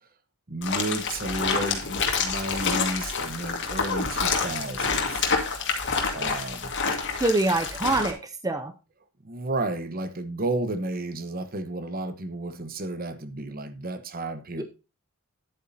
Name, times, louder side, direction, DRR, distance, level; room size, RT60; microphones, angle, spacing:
voice 1, 0.5-5.3 6.1-6.7 9.2-14.6, right 2 dB, 45° right, 1.1 m, -32 dB
sound 1, 0.6-8.1, left 5 dB, 60° left, 1.9 m, -28 dB
voice 2, 7.2-8.7 14.6-14.7, right 2 dB, 15° right, 0.6 m, -25 dB
10.5 x 8.2 x 2.8 m
head